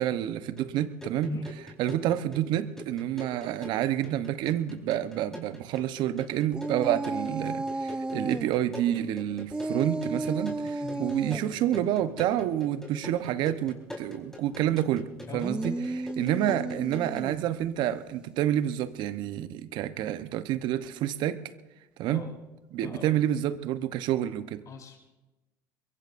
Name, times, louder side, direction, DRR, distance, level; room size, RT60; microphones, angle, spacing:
voice 1, 0.0-1.3 1.8-15.1 15.3-21.4 22.0-22.2 22.7-24.6, right 12 dB, 65° right, 12 dB, 1.0 m, -29 dB
sound 1, 0.6-17.3, left 2 dB, 5° left, 4.5 m, -45 dB
voice 2, 1.2-1.5 10.8-11.1 15.3-15.6 22.1-22.3 22.8-23.2 24.7-25.0, left 4 dB, 45° left, 0 dB, 4.6 m, -39 dB
sound 2, 6.5-8.5 9.5-11.4 15.3-17.5, right 2 dB, 10° right, 0.4 m, -33 dB
23.5 x 22.0 x 2.6 m, 1.1 s
supercardioid pair, 85°, 8 cm